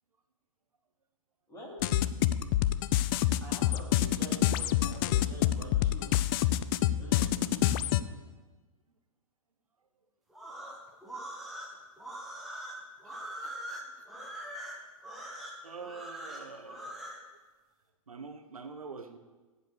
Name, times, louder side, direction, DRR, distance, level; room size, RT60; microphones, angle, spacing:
voice 1, 1.5-1.8 3.4-6.2 6.9-8.0, equal, 15° left, -5 dB, 4.5 m, -47 dB
sound 1, 1.8-8.0, left 13 dB, 40° left, 0.5 m, -27 dB
sound 2, 10.3-17.2, right 1 dB, ahead, 2.1 m, -42 dB
voice 2, 13.0-14.1 15.6-17.0 18.1-19.2, right 4 dB, 85° right, 8 dB, 1.0 m, -46 dB
15.5 x 5.2 x 6.8 m, 1.3 s
hypercardioid pair, 115°, 18 cm